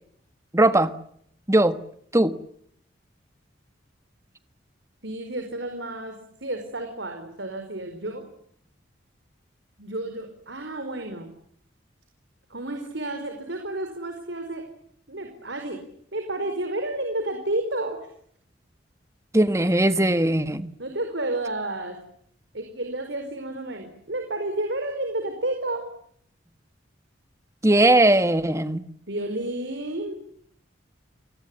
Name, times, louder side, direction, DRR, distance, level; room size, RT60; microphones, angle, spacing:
voice 1, 0.5-0.9 1.5-1.8 2.1-2.3 19.3-20.7 27.6-28.9, right 1 dB, 15° right, 1.4 m, -19 dB
voice 2, 5.0-8.2 9.8-11.3 12.5-14.6 15.1-15.8 16.1-18.0 20.8-22.0 22.5-25.8 29.1-30.2, right 1 dB, 70° right, 4.7 m, -31 dB
30.0 x 20.0 x 8.8 m
head